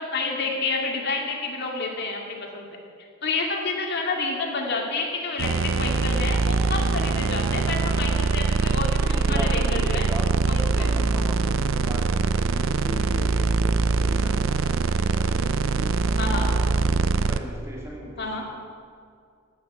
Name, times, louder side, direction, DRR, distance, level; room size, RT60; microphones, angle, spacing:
voice 1, 0.0-2.6 3.2-10.1 10.5-10.9 16.2-16.5 18.2-18.4, left 3 dB, 50° left, 0 dB, 2.2 m, -29 dB
sound 1, 5.4-17.4, right 4 dB, 65° right, 0.6 m, -23 dB
voice 2, 8.9-10.3 10.8-16.7 17.1-18.4, equal, 15° right, -3 dB, 2.5 m, -39 dB
10.5 x 10.5 x 7.3 m, 2.2 s
head